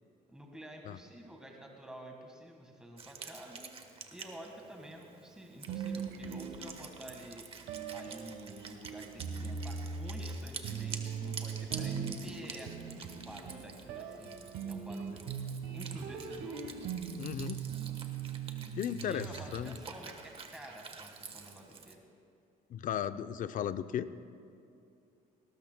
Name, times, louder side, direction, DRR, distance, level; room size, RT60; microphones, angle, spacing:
voice 1, 0.3-3.7 4.1-7.4 7.9-15.3 15.7-16.7 19.0-22.0, right 1 dB, 5° right, 1 dB, 1.6 m, -50 dB
Wind instrument woodwind instrument, 3.0-21.9, right 5 dB, 35° right, 1.2 m, -49 dB
sound 1, 5.7-7.1 7.7-19.9, right 6 dB, 90° right, 1.3 m, -40 dB
voice 2, 17.2-17.6 18.8-19.8 22.7-24.1, left 9 dB, 50° left, 12 dB, 0.5 m, -36 dB
19.5 x 18.5 x 2.2 m, 2.6 s
cardioid pair, 110°, 17 cm